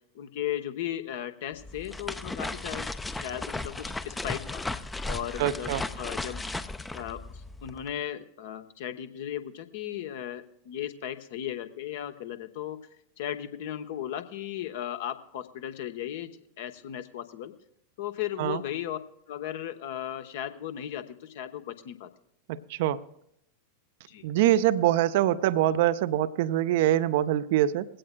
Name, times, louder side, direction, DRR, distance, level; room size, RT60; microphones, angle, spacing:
voice 1, 0.1-4.6 5.1-6.5 6.9-12.8 13.2-16.3 16.6-17.5 18.0-19.0 19.3-22.1 24.1-24.2, left 11 dB, 55° left, 9 dB, 0.9 m, -36 dB
sound 1, 1.5-7.9, left 2 dB, 10° left, 0.5 m, -36 dB
voice 2, 5.4-5.8 18.4-18.6 22.7-23.0 24.2-27.9, right 13 dB, 50° right, 14 dB, 0.5 m, -24 dB
20.5 x 16.5 x 2.2 m, 0.75 s
figure-of-eight pair, 90°, 0 cm